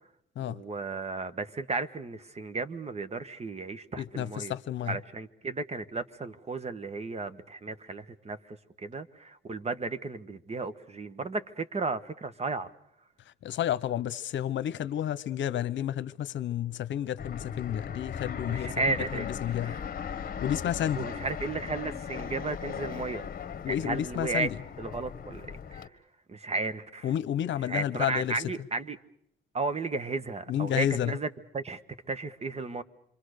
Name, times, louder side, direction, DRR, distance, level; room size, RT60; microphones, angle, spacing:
voice 1, 0.5-4.5 4.9-12.7 18.5-19.3 20.9-23.2 23.6-24.5 24.8-25.9 26.3-27.1 27.7-29.0 29.5-31.3 31.5-31.8 32.1-32.8, right 3 dB, 30° right, 1.5 m, -34 dB
voice 2, 4.0-5.0 13.3-19.8 20.4-21.1 23.6-24.6 27.0-28.4 30.5-31.2, left 10 dB, 70° left, 1.0 m, -31 dB
Fixed-wing aircraft airplane, 17.2-25.9, left 7 dB, 45° left, 1.5 m, -38 dB
27.5 x 24.0 x 6.7 m
cardioid pair, 90°, 20 cm